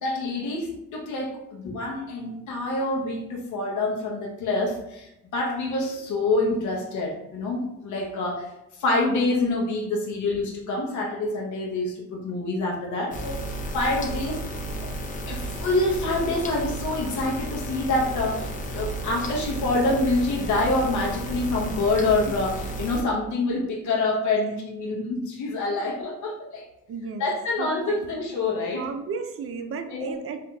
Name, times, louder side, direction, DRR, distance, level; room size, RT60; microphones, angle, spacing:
voice 1, 0.0-8.5 8.8-14.4 15.3-26.6 27.2-28.9 29.9-30.2, left 2 dB, 75° left, -1 dB, 0.9 m, -26 dB
sound 1, 13.1-23.0, right 1 dB, 25° left, 0.5 m, -33 dB
voice 2, 26.9-27.2 27.6-28.1 28.7-30.4, right 5 dB, 50° right, 7 dB, 0.5 m, -34 dB
3.8 x 2.7 x 2.2 m, 0.87 s
cardioid pair, 90°, 30 cm